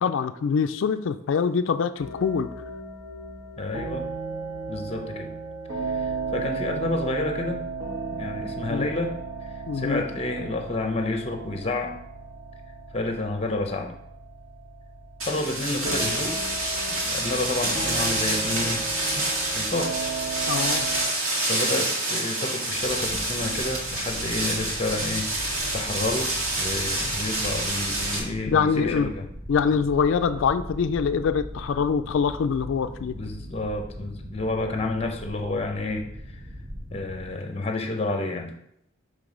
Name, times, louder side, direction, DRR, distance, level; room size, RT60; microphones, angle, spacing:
voice 1, 0.0-2.5 8.7-8.9 9.7-10.0 20.5-20.9 28.5-29.1 29.5-33.1, left 6 dB, 65° left, 11 dB, 0.3 m, -24 dB
sound 1, 2.0-21.0, right 4 dB, 55° right, 1.7 m, -35 dB
voice 2, 3.6-4.1 4.7-5.3 5.8-7.6 8.1-9.2 9.7-11.9 12.9-14.0 15.3-16.4 17.0-18.8 19.1-19.9 21.2-29.3 33.1-36.4 36.9-38.5, left 2 dB, 30° left, 4 dB, 0.7 m, -30 dB
sound 2, 15.2-28.2, right 2 dB, 85° right, 2.0 m, -27 dB
sound 3, 22.7-37.3, equal, 20° right, 0.7 m, -40 dB
6.0 x 3.3 x 5.0 m, 0.76 s
head